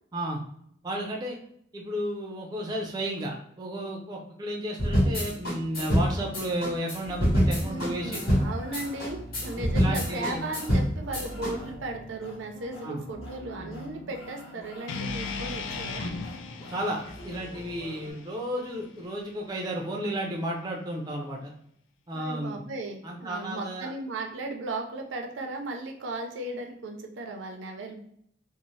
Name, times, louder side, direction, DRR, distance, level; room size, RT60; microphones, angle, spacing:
voice 1, 0.8-1.4 1.7-8.2 9.8-10.5 12.8-13.0 16.7-21.5 22.1-22.6 23.0-23.9, right 1 dB, 20° right, -1 dB, 0.4 m, -33 dB
sound 1, 4.8-11.5, equal, 50° left, 1.2 m, -26 dB
sound 2, 5.7-18.1, equal, 30° left, 0.9 m, -43 dB
voice 2, 7.5-16.1 22.1-28.0, right 2 dB, 75° right, 3 dB, 0.5 m, -36 dB
sound 3, 14.9-19.1, left 4 dB, 80° left, 0.3 m, -38 dB
2.6 x 2.0 x 3.0 m, 0.69 s
head